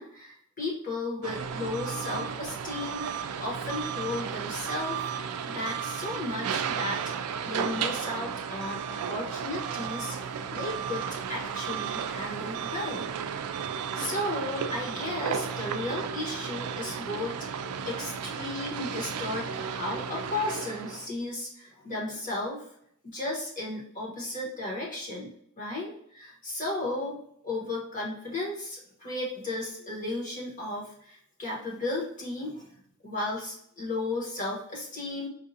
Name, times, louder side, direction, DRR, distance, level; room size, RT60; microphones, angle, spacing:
voice 1, 0.0-3.1 3.4-5.0 5.5-7.0 7.4-13.1 13.9-22.6 23.0-27.2 27.4-32.7 33.0-35.3, left 2 dB, 35° left, -4 dB, 1.3 m, -34 dB
sound 1, 1.2-21.1, right 7 dB, 85° right, 0.3 m, -34 dB
4.5 x 2.5 x 2.7 m, 0.68 s
head